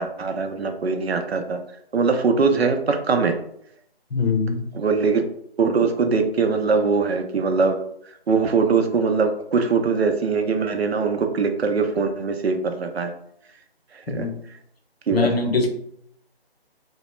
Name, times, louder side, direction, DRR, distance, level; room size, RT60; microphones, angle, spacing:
voice 1, 0.0-1.6 1.9-3.4 4.8-5.2 5.6-7.8 8.3-13.1 14.1-14.3 15.1-15.3, right 4 dB, 75° right, 6 dB, 0.5 m, -21 dB
voice 2, 4.1-4.7 14.1-14.4 15.1-15.7, left 4 dB, 70° left, 3 dB, 0.7 m, -22 dB
2.1 x 2.1 x 3.0 m, 0.70 s
figure-of-eight pair, 170°, 32 cm